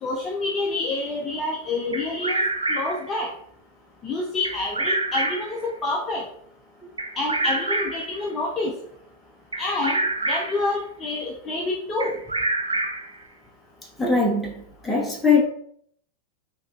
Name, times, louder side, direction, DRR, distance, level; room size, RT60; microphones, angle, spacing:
voice 1, 0.0-2.4 2.7-3.3 4.0-6.2 7.2-8.7 9.6-12.1, left 2 dB, 25° left, 0.6 m, -27 dB
Bird vocalization bird call bird song, 1.9-3.1 4.4-5.6 7.0-8.1 9.5-10.6 12.0-13.2, right 2 dB, 80° right, 0.5 m, -26 dB
voice 2, 14.0-14.5 14.8-15.5, left 4 dB, 5° left, 1.1 m, -20 dB
4.5 x 2.9 x 2.4 m
figure-of-eight pair, 90°, 0 cm